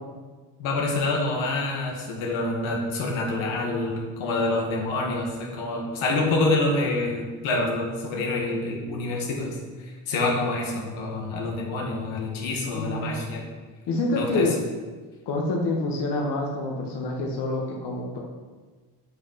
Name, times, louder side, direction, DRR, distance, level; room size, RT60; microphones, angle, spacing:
voice 1, 0.6-13.5 14.2-14.5, left 2 dB, 85° left, -1 dB, 2.1 m, -27 dB
voice 2, 12.7-13.2 13.9-14.5 15.3-18.2, left 2 dB, 60° left, -2 dB, 1.7 m, -27 dB
8.8 x 6.0 x 5.8 m, 1.4 s
cardioid pair, 105°, 46 cm